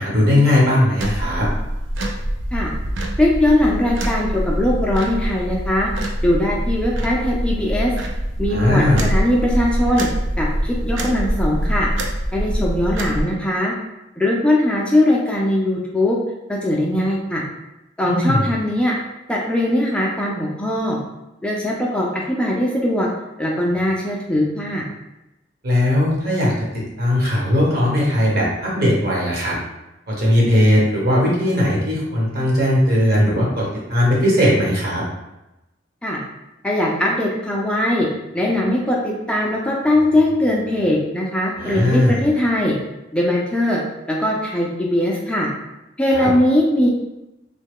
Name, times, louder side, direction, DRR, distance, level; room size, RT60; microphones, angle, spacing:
voice 1, 0.0-1.5 8.5-9.1 18.0-18.4 25.6-29.6 30.1-35.0 41.6-42.2 46.1-46.3, left 1 dB, 55° right, -4 dB, 1.1 m, -18 dB
sound 1, 1.0-13.2, equal, 80° right, 0.5 m, -24 dB
voice 2, 3.2-5.9 6.2-7.9 8.4-10.1 10.4-11.9 12.3-13.7 14.2-16.2 16.5-17.4 18.0-18.9 19.3-21.0 21.4-23.1 23.4-24.8 36.0-36.2 36.6-38.1 38.3-42.8 43.1-43.8 44.1-45.5 46.0-46.9, left 1 dB, 5° left, -3 dB, 0.3 m, -20 dB
3.1 x 2.2 x 3.5 m, 0.95 s
head